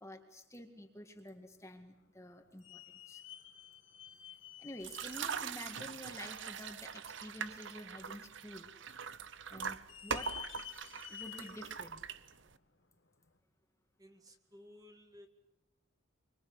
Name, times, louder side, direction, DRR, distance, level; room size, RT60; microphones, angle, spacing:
voice 1, 0.0-3.2 4.6-8.7 9.5-10.4 11.1-12.0, left 1 dB, 15° left, 5 dB, 2.0 m, -49 dB
sound 1, 1.8-1.9 2.6-6.0 6.5-6.6 7.2-7.3 8.2-8.7 8.9-9.0 9.7-11.7 12.2-12.3 13.2-13.3, left 10 dB, 65° left, 2.4 m, -51 dB
sound 2, 4.8-12.6, right 6 dB, 60° right, 0.9 m, -42 dB
voice 2, 14.0-15.3, left 1 dB, 20° right, 5 dB, 2.0 m, -57 dB
25.0 x 24.5 x 8.0 m, 0.93 s
head